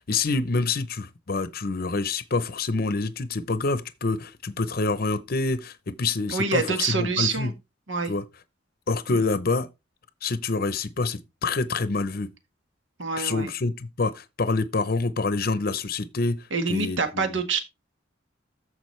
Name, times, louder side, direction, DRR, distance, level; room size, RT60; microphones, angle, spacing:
voice 1, 0.0-7.5 8.1-8.2 8.9-9.7 10.2-12.3 13.2-16.4 16.7-17.3, left 3 dB, 50° left, 0.7 m, -27 dB
voice 2, 6.3-7.5 7.9-8.1 9.1-9.2 13.0-13.5 16.5-17.6, right 4 dB, 80° right, 1.6 m, -26 dB
13.5 x 4.9 x 3.2 m
head